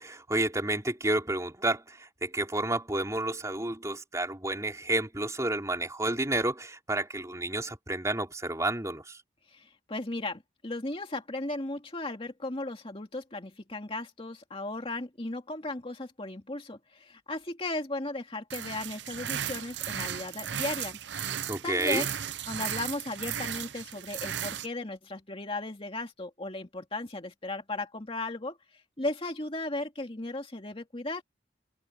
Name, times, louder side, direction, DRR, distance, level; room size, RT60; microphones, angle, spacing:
voice 1, 0.0-9.2 21.5-22.0, right 2 dB, 15° right, 3.7 m, -30 dB
voice 2, 9.5-21.0 21.6-22.1 22.5-31.2, left 2 dB, 30° left, 2.3 m, -36 dB
sound 1, 18.5-24.7, right 9 dB, 70° right, 0.8 m, -35 dB
head